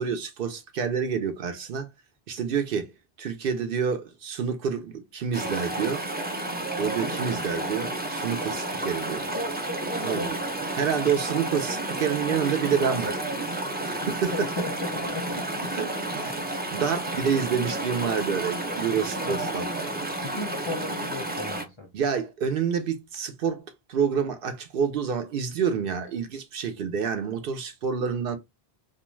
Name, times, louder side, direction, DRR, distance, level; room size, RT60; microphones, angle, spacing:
voice 1, 0.0-1.9 2.3-2.9 3.2-6.0 6.8-9.3 10.0-13.2 13.8-14.5 15.7-15.9 16.2-19.9 21.9-23.6 23.9-28.4, right 7 dB, 65° right, 0.7 m, -28 dB
Chatter / Stream, 5.3-21.6, right 1 dB, 15° right, 0.4 m, -31 dB
voice 2, 14.0-15.7 19.3-19.7 20.2-21.9, left 3 dB, 35° left, 0.5 m, -36 dB
2.4 x 2.2 x 3.1 m
omnidirectional pair, 1.0 m